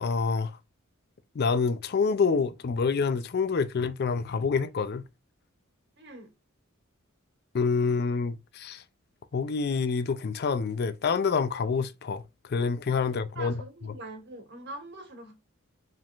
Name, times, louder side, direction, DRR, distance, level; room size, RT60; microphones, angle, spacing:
voice 1, 0.0-0.5 1.4-5.0 7.5-8.8 9.3-12.2 12.5-13.5, left 5 dB, 50° left, 0.4 m, -27 dB
voice 2, 6.0-6.3 13.0-15.3, right 2 dB, 50° right, 1.5 m, -43 dB
5.2 x 3.6 x 2.5 m
head